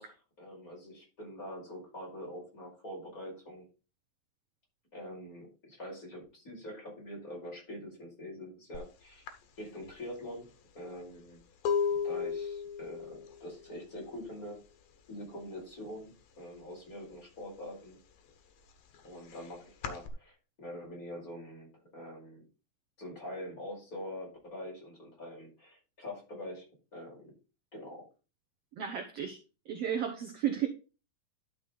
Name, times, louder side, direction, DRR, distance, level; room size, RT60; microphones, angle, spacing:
voice 1, 0.0-3.6 4.9-9.2 9.6-10.5 10.7-11.4 12.0-14.6 15.1-18.0 19.0-22.4 23.0-26.7 26.9-27.3 27.7-28.0, left 1 dB, 25° left, -2 dB, 5.4 m, -44 dB
sound 1, 8.7-8.9 9.3-14.9 15.2-15.7 16.0-17.1 17.5-20.1, left 6 dB, 75° left, 2.9 m, -36 dB
voice 2, 28.8-29.4 29.7-30.7, right 9 dB, 70° right, 4 dB, 1.5 m, -33 dB
11.5 x 5.9 x 3.9 m, 0.32 s
omnidirectional pair, 4.1 m